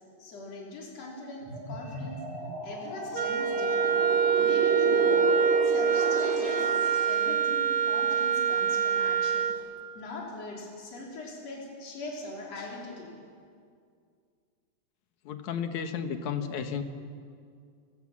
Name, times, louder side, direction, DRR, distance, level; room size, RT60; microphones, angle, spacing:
voice 1, 0.2-2.2 2.6-5.3 5.6-9.5 9.9-13.1, left 2 dB, 60° left, -2 dB, 4.8 m, -41 dB
sound 1, 1.4-7.2, right 1 dB, 30° right, 6.2 m, -34 dB
Wind instrument woodwind instrument, 3.1-9.6, right 7 dB, 65° right, 0.9 m, -25 dB
voice 2, 15.3-16.8, left 7 dB, 75° left, 8 dB, 2.7 m, -33 dB
29.5 x 16.0 x 7.4 m, 2.3 s
omnidirectional pair, 3.4 m